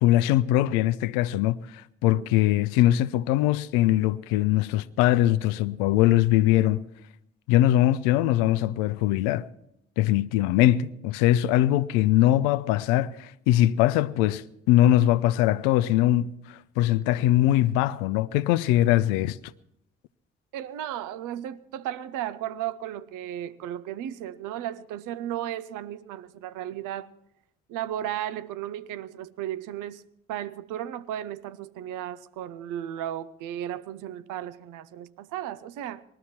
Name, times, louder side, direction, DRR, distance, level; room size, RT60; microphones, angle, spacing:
voice 1, 0.0-1.6 2.0-6.8 7.5-9.5 10.0-19.4, left 14 dB, 80° left, 0.6 m, -22 dB
voice 2, 2.0-2.3 20.5-27.1 27.7-30.0 30.3-36.0, right 11 dB, 70° right, 0.7 m, -35 dB
20.0 x 13.0 x 4.3 m
hypercardioid pair, 40°, 32 cm